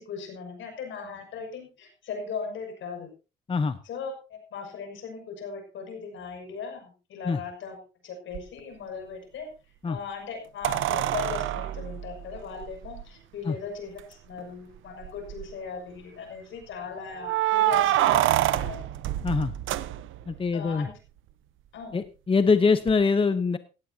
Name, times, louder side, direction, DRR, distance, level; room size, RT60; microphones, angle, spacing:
voice 1, 0.0-3.1 3.8-9.5 9.9-18.8 20.5-20.9 21.7-22.0, left 5 dB, 75° left, 4 dB, 6.3 m, -38 dB
voice 2, 3.5-3.8 7.2-7.4 9.8-10.0 13.4-13.6 19.2-19.5 20.3-20.9 21.9-23.6, left 4 dB, 25° left, 11 dB, 0.9 m, -23 dB
sound 1, 8.3-8.4 10.6-13.0 14.0-14.1 14.4-14.5 15.0-15.5 17.2-20.4 22.9-23.0, right 14 dB, 85° right, 0.9 m, -26 dB
17.0 x 15.5 x 2.8 m, 0.32 s
cardioid pair, 90°, 20 cm